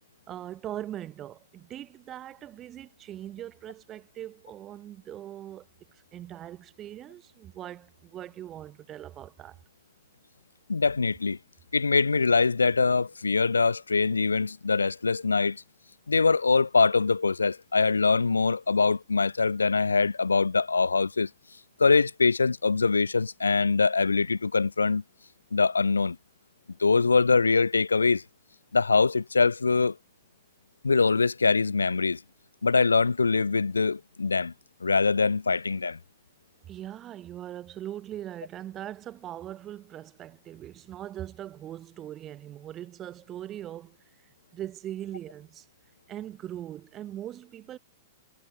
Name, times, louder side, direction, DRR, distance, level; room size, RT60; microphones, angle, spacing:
voice 1, 0.3-5.7 6.1-9.6 36.7-44.0 44.5-45.7 46.1-47.8, right 12 dB, 30° right, 7.5 m, -40 dB
voice 2, 10.7-11.4 11.7-15.6 16.1-21.3 21.8-25.0 25.5-26.2 26.8-28.2 28.7-30.0 30.8-32.2 32.6-34.5 34.8-36.0, left 4 dB, 85° left, 3.4 m, -23 dB
figure-of-eight pair, 105°, 0 cm